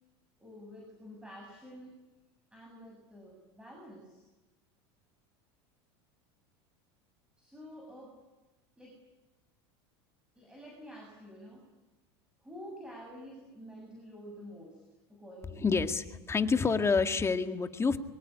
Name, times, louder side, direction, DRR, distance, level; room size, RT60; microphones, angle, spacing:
voice 1, 0.4-2.0 2.5-4.3 7.4-8.2 8.8-9.0 10.3-11.7 12.4-15.8, equal, 5° right, 1 dB, 7.9 m, -49 dB
voice 2, 15.6-18.0, left 5 dB, 20° left, 7 dB, 2.0 m, -28 dB
25.0 x 23.5 x 9.9 m, 1.1 s
supercardioid pair, 110°, 14 cm